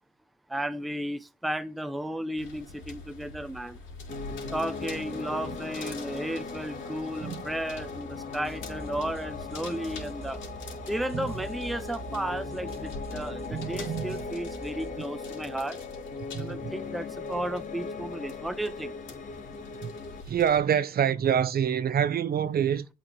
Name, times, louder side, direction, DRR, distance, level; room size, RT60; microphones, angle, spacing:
voice 1, 0.5-3.8 4.5-10.4 10.9-15.8 16.4-18.9, right 1 dB, ahead, 0.5 m, -34 dB
sound 1, 2.4-20.6, left 3 dB, 75° left, 3.1 m, -46 dB
Piano, 4.1-20.2, left 4 dB, 40° left, 1.6 m, -39 dB
sound 2, 8.4-15.0, right 3 dB, 30° right, 1.0 m, -45 dB
voice 2, 13.5-14.3 16.3-16.8 19.8-19.9 20.3-22.9, right 8 dB, 50° right, 0.7 m, -26 dB
8.2 x 4.6 x 3.7 m
cardioid pair, 90°, 20 cm